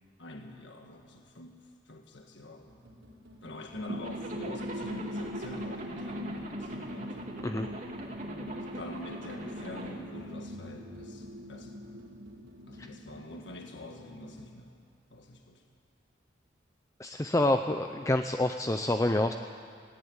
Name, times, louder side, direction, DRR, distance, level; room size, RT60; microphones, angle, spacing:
voice 1, 0.2-2.8 3.4-7.2 8.2-11.8 12.6-14.8 15.1-15.6, left 1 dB, 70° left, 3 dB, 1.6 m, -45 dB
sound 1, 2.7-14.5, equal, 90° right, 5.3 m, -54 dB
sound 2, 3.9-14.3, equal, 60° right, 1.2 m, -41 dB
Zipper (clothing), 4.0-10.0, right 1 dB, 40° right, 2.4 m, -43 dB
voice 2, 17.0-19.3, left 1 dB, 15° left, 6 dB, 0.5 m, -27 dB
18.0 x 18.0 x 9.7 m, 2.4 s
head